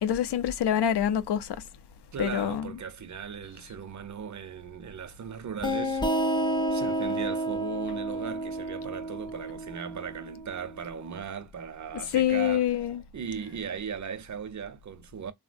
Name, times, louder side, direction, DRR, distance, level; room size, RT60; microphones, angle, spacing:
voice 1, 0.0-1.6 2.2-2.7 12.1-13.0, left 10 dB, 85° left, 0.5 m, -26 dB
voice 2, 2.1-6.0 6.7-12.7 13.1-15.3, right 7 dB, 50° right, 0.5 m, -37 dB
sound 1, 5.6-11.0, right 1 dB, 10° left, 0.5 m, -30 dB
3.5 x 2.1 x 2.4 m
wide cardioid pair, 155°, 39 cm